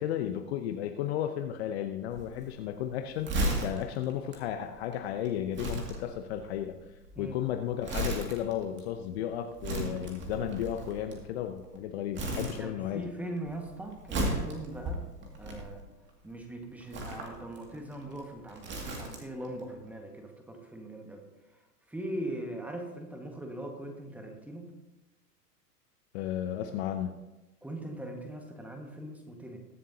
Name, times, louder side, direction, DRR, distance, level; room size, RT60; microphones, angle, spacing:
voice 1, 0.0-6.8 7.2-13.0 26.1-27.2, left 10 dB, 40° left, 7 dB, 0.8 m, -34 dB
Crumpling crinkling, 2.1-11.8 12.1-13.1 13.4-16.1 16.8-19.5 19.8-19.9, right 1 dB, 25° right, 2.2 m, -36 dB
voice 2, 12.6-15.1 15.4-15.8 16.2-21.2 21.9-24.7 27.6-29.6, right 1 dB, 5° right, 3 dB, 1.5 m, -40 dB
21.5 x 7.3 x 2.8 m, 1.0 s
figure-of-eight pair, 105°, 47 cm